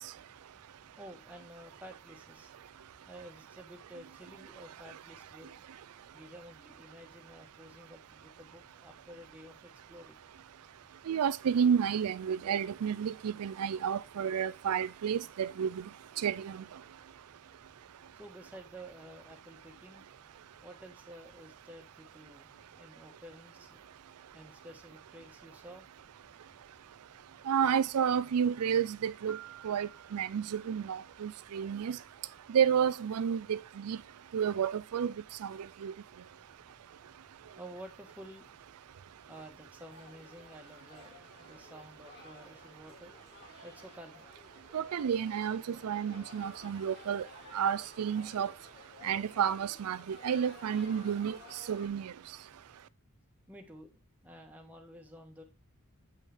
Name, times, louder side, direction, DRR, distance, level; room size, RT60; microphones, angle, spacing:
voice 1, 1.0-2.5 3.1-5.5 6.1-10.2 18.1-20.0 20.6-23.8 24.3-25.9 37.5-38.5 39.3-43.1 43.6-44.3 53.5-55.4, right 1 dB, 5° right, 1.4 m, -51 dB
voice 2, 11.1-15.8 16.2-16.6 27.5-29.4 29.6-32.0 32.5-34.0 34.3-35.1 35.4-35.9 44.7-47.3 47.5-48.5 49.0-51.4 51.7-52.1, right 8 dB, 90° right, 0.4 m, -31 dB
Piano, 29.3-31.2, right 9 dB, 65° left, 1.3 m, -53 dB
sound 1, 39.9-51.9, left 3 dB, 50° left, 2.2 m, -55 dB
7.8 x 5.5 x 3.4 m
head